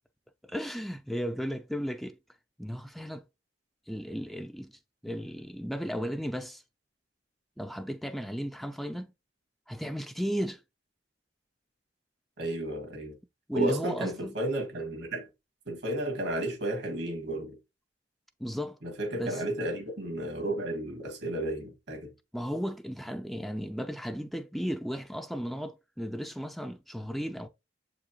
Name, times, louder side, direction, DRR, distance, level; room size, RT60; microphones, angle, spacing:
voice 1, 0.4-2.2 2.6-3.2 3.9-6.6 7.6-9.1 9.7-10.6 13.5-14.4 18.4-18.8 19.1-19.4 22.3-27.5, equal, ahead, 0.3 m, -35 dB
voice 2, 12.4-13.2 13.5-15.3 15.7-17.6 18.8-22.1, right 1 dB, 65° right, 2.0 m, -32 dB
7.2 x 4.9 x 2.8 m
head